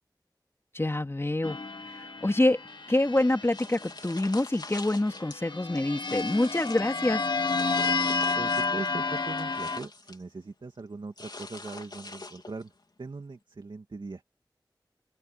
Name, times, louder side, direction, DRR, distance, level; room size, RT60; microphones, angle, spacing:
voice 1, 0.7-1.6 1.9-2.6 2.9-7.2, left 1 dB, 30° left, 3.2 m, -26 dB
sound 1, 1.4-4.2 5.0-9.8, left 4 dB, 85° left, 1.7 m, -31 dB
sound 2, 3.5-5.4 5.8-6.9 7.5-8.8 9.2-10.2 11.2-12.7, left 3 dB, 65° left, 3.5 m, -44 dB
voice 2, 8.4-12.7 13.0-14.2, right 3 dB, 80° right, 2.2 m, -40 dB
open air
wide cardioid pair, 55°, 8 cm